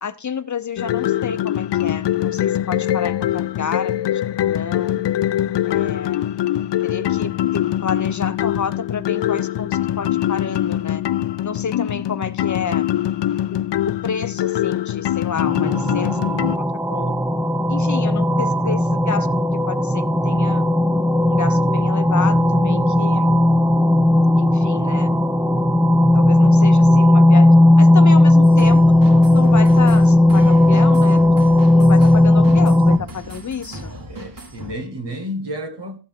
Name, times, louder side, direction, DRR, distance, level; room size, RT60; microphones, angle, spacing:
voice 1, 0.0-4.1 4.4-4.9 5.7-6.3 6.8-11.0 11.4-12.9 14.0-16.2 16.5-17.2 17.7-19.3 19.7-20.6 21.3-23.3 24.4-25.1 26.1-27.5 27.8-28.8 29.1-31.2 31.7-33.8, left 6 dB, 45° left, 0.7 m, -30 dB
sound 1, 0.8-16.6, left 12 dB, 75° left, 0.5 m, -23 dB
sound 2, 15.4-33.0, left 1 dB, 5° right, 0.6 m, -15 dB
sound 3, 28.4-34.7, right 1 dB, 50° right, 2.1 m, -36 dB
voice 2, 34.1-36.0, equal, 75° right, 1.8 m, -31 dB
14.5 x 5.7 x 3.6 m
wide cardioid pair, 95°, 42 cm